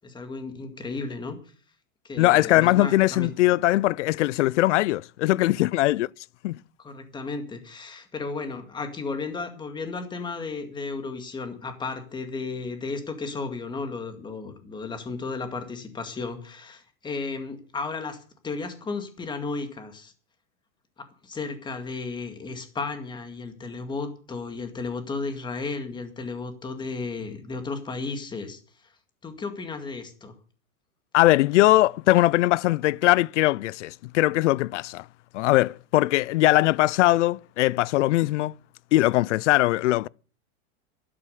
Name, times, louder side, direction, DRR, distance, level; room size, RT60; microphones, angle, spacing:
voice 1, 0.0-1.4 2.0-3.3 6.8-18.2 18.4-20.1 21.2-28.9 29.2-30.3, left 4 dB, 10° left, 2.1 m, -34 dB
voice 2, 2.2-6.1 6.4-6.6 31.1-35.0 35.3-38.5 38.9-40.1, left 17 dB, 60° left, 0.5 m, -21 dB
12.0 x 11.5 x 6.6 m
supercardioid pair, 165°, 41 cm